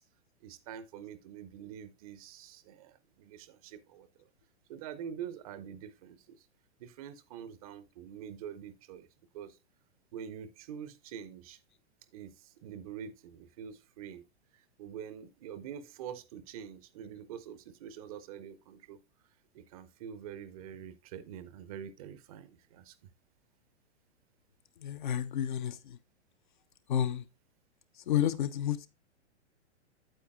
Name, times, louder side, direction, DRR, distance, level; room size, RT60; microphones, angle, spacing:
voice 1, 0.4-4.3 4.7-6.5 6.8-9.1 9.3-9.6 10.1-11.6 12.1-14.3 14.5-19.0 19.5-23.1, right 8 dB, 30° right, 0.6 m, -45 dB
voice 2, 24.8-26.0 26.9-27.2 28.1-28.9, left 10 dB, 45° left, 0.6 m, -30 dB
8.9 x 8.3 x 2.3 m
figure-of-eight pair, 105°, 35 cm